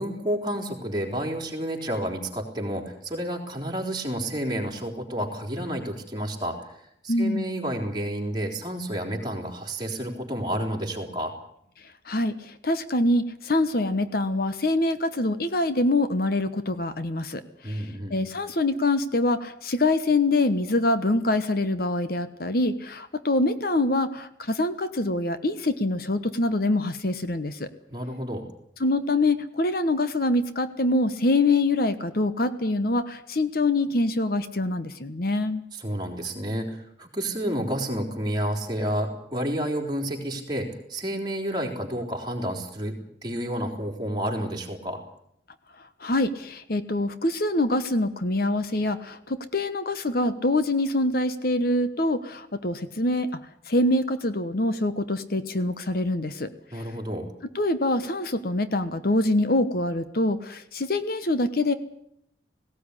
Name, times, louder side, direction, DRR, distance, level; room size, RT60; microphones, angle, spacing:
voice 1, 0.0-6.7 7.0-11.3 17.6-18.1 27.9-28.4 35.7-45.0 56.7-57.3, right 1 dB, 25° right, 1 dB, 3.8 m, -30 dB
voice 2, 7.1-7.5 12.1-17.8 18.1-27.7 28.8-35.6 46.0-53.3 53.7-56.8 57.5-61.7, left 2 dB, 55° left, 11 dB, 1.2 m, -25 dB
18.5 x 17.5 x 9.8 m, 0.73 s
head